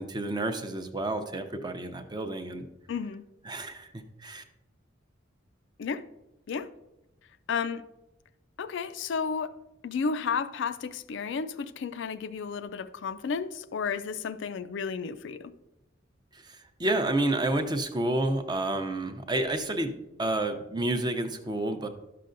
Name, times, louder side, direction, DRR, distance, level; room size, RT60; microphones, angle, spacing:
voice 1, 0.0-2.6 3.5-4.4 16.3-19.9 20.2-21.9, right 2 dB, 20° right, 0.6 m, -30 dB
voice 2, 2.9-3.2 5.8-6.0 6.5-6.7 7.5-7.8 8.6-9.6 9.8-15.5, left 5 dB, 60° left, 0.4 m, -32 dB
11.5 x 6.7 x 2.6 m
head